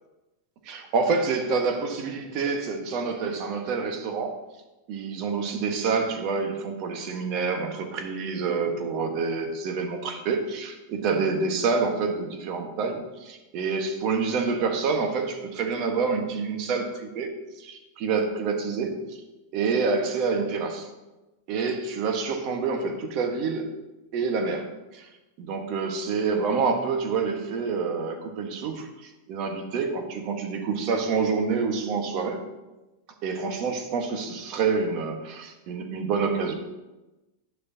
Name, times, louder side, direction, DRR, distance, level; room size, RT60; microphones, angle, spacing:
voice 1, 0.6-4.4 4.9-17.3 17.6-19.2 19.5-20.9 21.5-23.7 24.1-25.1 25.4-32.4 33.2-36.5, right 4 dB, 45° right, 5 dB, 1.4 m, -27 dB
10.5 x 6.4 x 2.8 m, 1.0 s
supercardioid pair, 140°, 0 cm